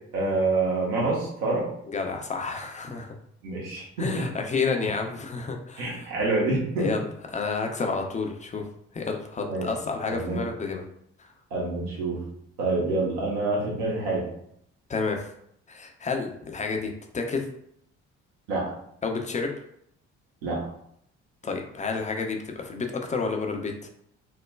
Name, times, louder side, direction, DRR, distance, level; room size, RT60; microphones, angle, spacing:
voice 1, 0.1-1.7 3.4-4.2 5.8-6.9 9.5-9.6 10.1-10.4 11.5-12.2 12.6-14.3 18.5-18.7 20.4-20.6, right 2 dB, 70° right, -4 dB, 0.9 m, -27 dB
voice 2, 1.9-3.2 4.0-6.1 6.8-7.1 7.3-8.7 8.9-10.8 11.2-11.3 14.9-15.3 15.7-17.5 19.0-19.5 21.4-23.7, left 4 dB, 20° left, 3 dB, 0.4 m, -30 dB
3.1 x 2.1 x 2.2 m, 0.71 s
figure-of-eight pair, 45°, 35 cm